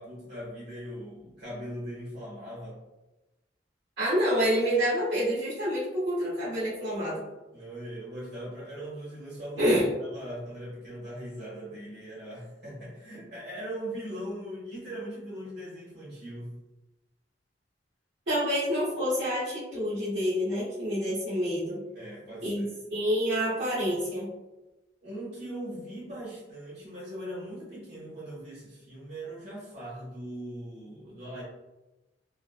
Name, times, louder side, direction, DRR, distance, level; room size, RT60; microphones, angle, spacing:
voice 1, 0.0-2.8 7.5-16.6 21.9-22.8 25.0-31.4, right 1 dB, 60° right, -8 dB, 1.5 m, -40 dB
voice 2, 4.0-7.2 9.6-9.9 18.3-21.8 22.4-24.3, equal, 80° right, -11 dB, 1.3 m, -27 dB
3.2 x 2.1 x 2.4 m, 1.0 s
head